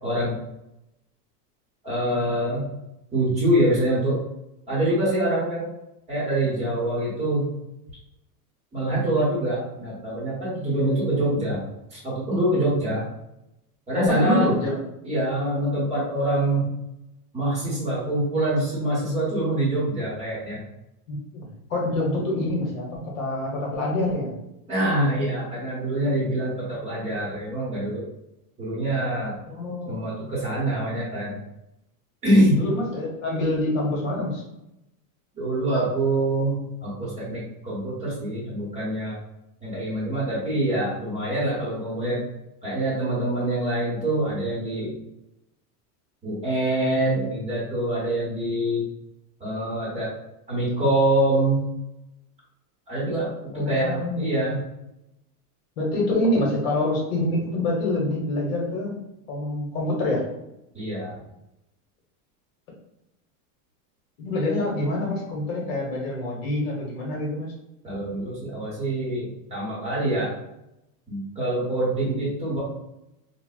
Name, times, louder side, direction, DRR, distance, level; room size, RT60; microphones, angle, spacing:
voice 1, 0.0-0.4 1.8-2.6 3.1-4.2 4.7-5.7 6.1-7.5 8.7-11.6 11.9-13.0 13.9-14.5 15.0-16.7 17.3-20.6 24.7-28.1 28.6-29.4 29.9-31.4 32.2-32.6 35.3-39.1 39.6-42.2 42.6-44.9 46.2-48.8 49.4-50.1 50.5-51.6 52.9-54.6 60.7-61.2 67.8-70.3 71.1-72.6, right 1 dB, 15° right, -8 dB, 1.0 m, -25 dB
voice 2, 14.0-14.8 21.1-24.3 29.5-30.1 32.5-34.4 53.5-54.2 55.8-59.0 59.3-60.2 64.2-67.5, left 1 dB, 55° left, -1 dB, 1.1 m, -26 dB
4.0 x 2.2 x 2.3 m, 0.88 s
supercardioid pair, 165°, 46 cm